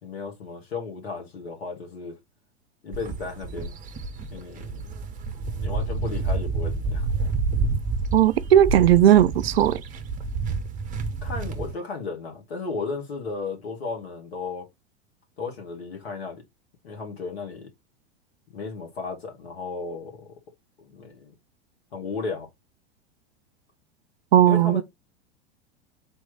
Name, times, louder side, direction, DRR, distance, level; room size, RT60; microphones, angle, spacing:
voice 1, 0.0-2.2 2.8-3.8 4.3-4.8 5.4-7.1 11.2-14.7 15.4-16.4 16.8-17.7 18.5-20.4 20.8-21.3 21.9-22.5 24.4-24.8, left 4 dB, 65° left, 2.1 m, -34 dB
sound 1, 2.9-11.7, right 3 dB, 25° right, 0.7 m, -29 dB
voice 2, 8.1-9.8 24.3-24.8, right 11 dB, 60° right, 0.5 m, -17 dB
4.0 x 3.1 x 3.7 m
figure-of-eight pair, 90°, 34 cm